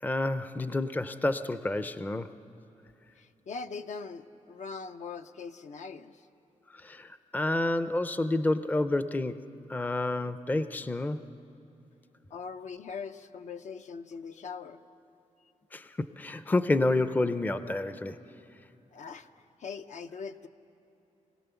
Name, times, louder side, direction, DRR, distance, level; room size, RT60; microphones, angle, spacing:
voice 1, 0.0-2.3 6.7-11.2 15.7-18.2, left 2 dB, 15° left, 12 dB, 0.5 m, -29 dB
voice 2, 3.2-6.2 12.3-14.8 18.9-20.5, left 5 dB, 70° left, 8 dB, 0.7 m, -41 dB
25.0 x 17.0 x 6.9 m, 3.0 s
wide cardioid pair, 140°, 13 cm